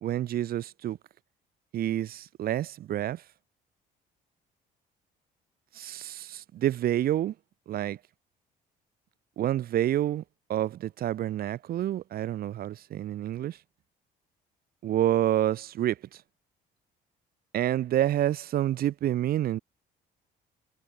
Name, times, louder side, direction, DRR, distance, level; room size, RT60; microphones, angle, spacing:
voice 1, 0.0-1.0 1.7-3.2 5.7-7.3 7.7-8.0 9.4-10.2 10.5-13.6 14.8-16.2 17.5-19.6, right 12 dB, 60° right, 2.2 m, -28 dB
cardioid pair, 110°, 17 cm